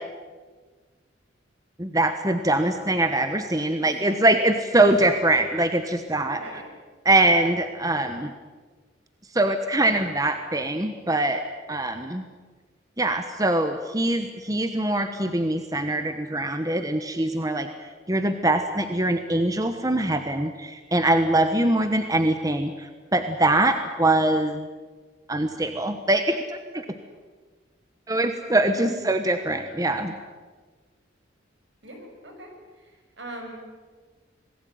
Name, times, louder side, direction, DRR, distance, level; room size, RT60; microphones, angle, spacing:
voice 1, 1.8-6.4 7.0-8.3 9.3-11.4 11.7-12.3 13.0-24.6 25.3-26.8 28.1-30.1, right 1 dB, 20° right, 7 dB, 1.2 m, -23 dB
voice 2, 6.4-6.7 28.8-29.1 31.8-33.6, right 1 dB, 70° right, 3 dB, 7.3 m, -41 dB
26.5 x 19.5 x 9.4 m, 1.4 s
head